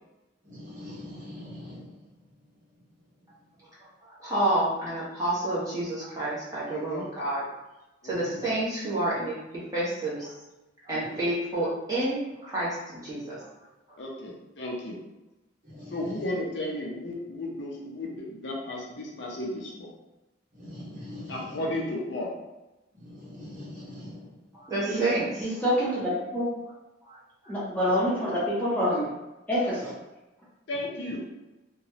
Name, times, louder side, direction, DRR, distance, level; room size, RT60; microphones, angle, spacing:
voice 1, 0.4-1.9 15.6-16.0 20.5-21.6 22.9-24.2, left 1 dB, 45° right, 1.3 m, -42 dB
voice 2, 4.0-7.4 8.0-10.3 10.8-12.8 13.0-13.5 13.9-14.0 24.5-25.4 27.0-27.2 27.4-27.5, right 1 dB, 20° right, 1.1 m, -29 dB
voice 3, 6.7-7.1 8.0-8.4 10.9-11.2 14.0-15.0 15.9-19.9 21.3-22.3 30.7-31.3, left 1 dB, 70° left, 0.6 m, -34 dB
voice 4, 25.4-26.5 27.5-29.1 29.5-29.9, equal, 10° left, 0.7 m, -26 dB
2.9 x 2.3 x 2.8 m
head